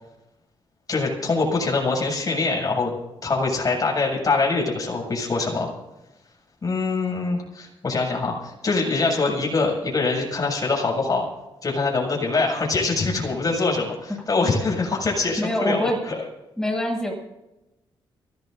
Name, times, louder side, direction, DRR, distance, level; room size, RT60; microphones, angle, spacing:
voice 1, 0.9-2.9 3.2-5.7 6.6-11.2 11.6-15.8, left 3 dB, 40° left, -1 dB, 7.5 m, -24 dB
voice 2, 15.4-16.0 16.6-17.1, left 1 dB, 5° left, 0 dB, 7.8 m, -24 dB
24.5 x 18.0 x 2.7 m, 0.98 s
cardioid pair, 75°, 10 cm